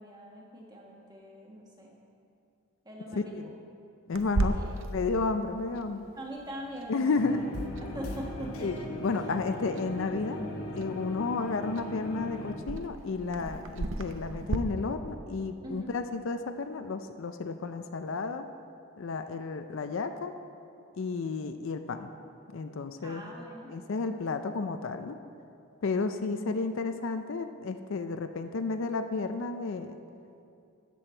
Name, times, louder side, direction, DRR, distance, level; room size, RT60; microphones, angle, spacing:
voice 1, 0.0-2.0 2.8-3.3 4.1-4.7 6.2-7.5 7.8-8.7 9.1-9.5 15.6-15.9 23.0-23.7, equal, 20° right, -2 dB, 1.3 m, -43 dB
voice 2, 3.1-3.5 4.1-4.6 4.9-6.0 6.9-7.5 8.6-10.5 10.7-18.5 19.0-20.3 21.0-22.1 22.5-23.3 23.7-25.2 25.8-30.0, left 4 dB, 60° left, 8 dB, 0.4 m, -32 dB
Clock, 4.1-14.6, right 2 dB, 55° right, 0.6 m, -38 dB
sound 1, 7.2-12.6, left 1 dB, 75° left, 1.0 m, -38 dB
13.0 x 7.8 x 4.4 m, 2.6 s
head